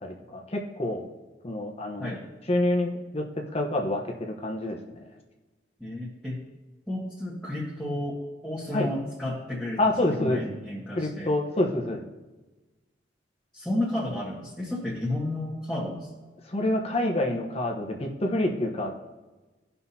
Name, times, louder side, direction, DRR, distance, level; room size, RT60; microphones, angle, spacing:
voice 1, 0.0-1.1 1.4-2.1 2.5-3.2 3.5-4.8 8.7-8.9 9.8-10.4 10.9-12.0 16.5-18.9, left 1 dB, 35° left, 1 dB, 1.0 m, -27 dB
voice 2, 5.8-6.4 6.9-11.3 13.5-16.3, left 1 dB, 5° left, -7 dB, 1.5 m, -32 dB
15.5 x 5.7 x 2.8 m, 1.2 s
head